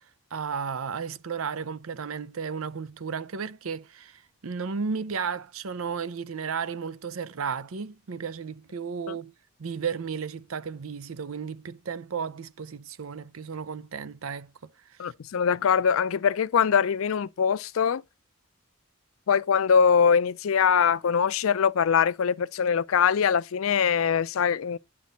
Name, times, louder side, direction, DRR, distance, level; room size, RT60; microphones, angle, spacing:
voice 1, 0.3-9.3 9.6-15.1, right 6 dB, 80° right, 0.6 m, -34 dB
voice 2, 15.0-18.0 19.3-24.8, left 7 dB, 75° left, 0.4 m, -23 dB
10.5 x 5.9 x 4.0 m
head